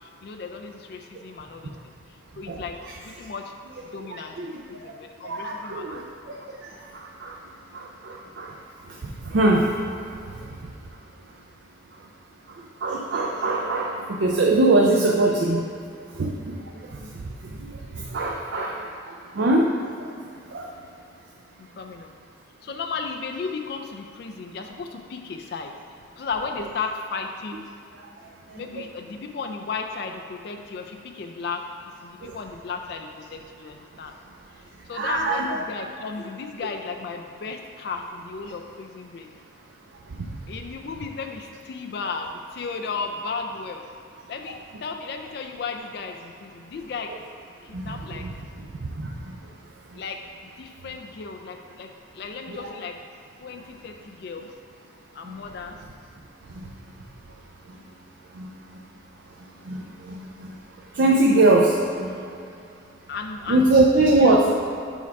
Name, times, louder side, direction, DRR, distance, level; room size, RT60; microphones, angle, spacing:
voice 1, 0.0-1.7 2.1-2.8 3.0-3.5 3.9-6.4 21.6-22.1 22.6-25.7 26.2-27.6 28.6-31.7 32.0-34.1 34.9-39.3 40.5-43.9 44.3-47.1 47.6-48.3 49.9-53.0 53.4-54.5 55.1-55.8 63.1-63.6 64.2-64.4, left 4 dB, 55° left, 4 dB, 0.3 m, -35 dB
voice 2, 4.1-4.9 5.2-6.0 6.3-7.4 7.7-8.6 8.9-9.7 10.2-10.6 12.5-15.6 16.1-20.1 20.5-20.7 28.5-28.7 32.2-32.4 34.9-35.6 40.2-40.3 47.7-48.3 48.8-49.4 49.9-50.0 52.5-52.7 55.2-55.4 56.5-56.7 57.7-57.8 58.3-58.8 59.6-62.1 63.5-64.5, right 2 dB, 65° right, -1 dB, 0.5 m, -23 dB
7.1 x 3.5 x 4.6 m, 2.5 s
head